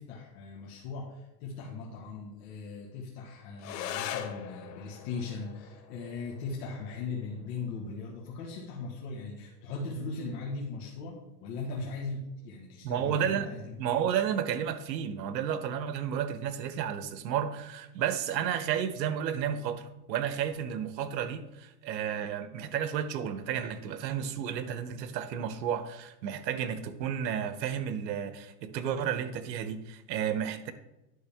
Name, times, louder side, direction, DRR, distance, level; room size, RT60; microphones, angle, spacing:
voice 1, 0.0-11.2 11.4-13.8, left 4 dB, 55° left, 1.6 m, -39 dB
sound 1, 3.6-12.6, left 9 dB, 70° left, 1.0 m, -44 dB
voice 2, 12.8-13.5 13.8-30.7, right 8 dB, 85° right, 1.0 m, -32 dB
9.7 x 6.3 x 3.6 m
supercardioid pair, 145°, 50 cm